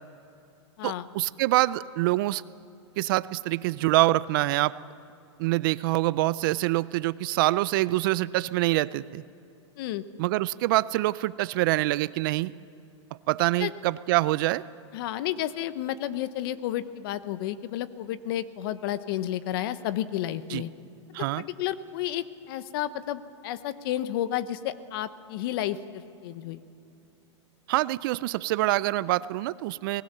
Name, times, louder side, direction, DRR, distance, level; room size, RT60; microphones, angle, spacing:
voice 1, 0.8-2.4 3.0-4.8 5.4-9.2 10.2-12.5 13.3-14.6 20.5-20.6 21.1-21.4 27.7-30.0, right 18 dB, 45° right, 18 dB, 0.5 m, -25 dB
voice 2, 14.9-20.7 21.4-26.6, left 12 dB, 50° left, 14 dB, 1.0 m, -31 dB
24.0 x 19.0 x 6.8 m, 2.8 s
hypercardioid pair, 150°, 15 cm